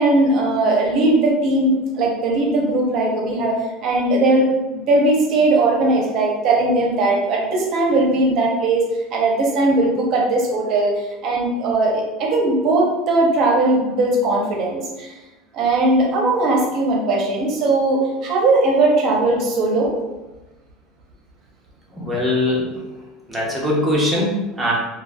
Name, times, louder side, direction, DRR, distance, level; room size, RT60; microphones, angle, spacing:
voice 1, 0.0-8.8 9.1-10.9 11.2-15.1 15.5-19.9, right 2 dB, 40° right, -1 dB, 0.7 m, -19 dB
voice 2, 22.0-22.7 23.3-24.7, left 1 dB, 5° right, -5 dB, 0.7 m, -21 dB
2.5 x 2.4 x 3.3 m, 1.1 s
cardioid pair, 165°, 0 cm